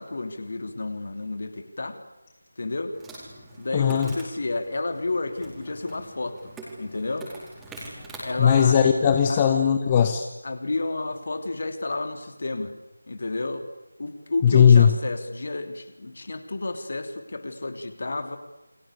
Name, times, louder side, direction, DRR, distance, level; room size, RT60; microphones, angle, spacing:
voice 1, 0.0-2.0 2.6-2.9 3.6-6.5 6.8-7.3 8.2-8.8 9.3-9.4 10.4-12.7 13.1-13.7 14.0-18.4, left 2 dB, 50° left, 8 dB, 3.2 m, -31 dB
Insect, 2.9-9.7, right 1 dB, 5° right, 4.5 m, -44 dB
voice 2, 3.7-4.1 8.4-10.3 14.4-14.9, left 7 dB, 20° left, 7 dB, 1.1 m, -18 dB
29.0 x 23.0 x 8.5 m, 1.0 s
figure-of-eight pair, 165°, 0 cm